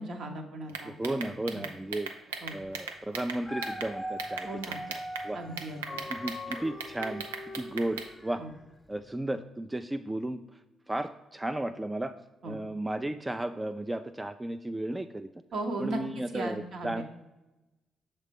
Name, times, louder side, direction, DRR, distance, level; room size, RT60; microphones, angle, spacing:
voice 1, 0.0-1.1 1.5-1.6 2.4-2.6 4.4-4.8 5.3-6.0 8.4-8.5 12.4-12.5 15.5-16.0 16.3-17.0, right 2 dB, 60° right, 4 dB, 0.9 m, -37 dB
voice 2, 0.7-5.4 6.1-7.3 7.5-8.4 8.9-10.6 10.9-12.1 12.4-15.3 15.8-17.0, right 1 dB, 15° right, 9 dB, 0.3 m, -34 dB
sound 1, 0.7-3.9 4.2-5.3 5.6-8.1, right 6 dB, 85° right, 0.4 m, -38 dB
Dog, 3.2-8.6 9.1-9.2, left 1 dB, 10° left, 0.8 m, -41 dB
6.4 x 4.1 x 3.6 m, 1.0 s
hypercardioid pair, 40°, 0 cm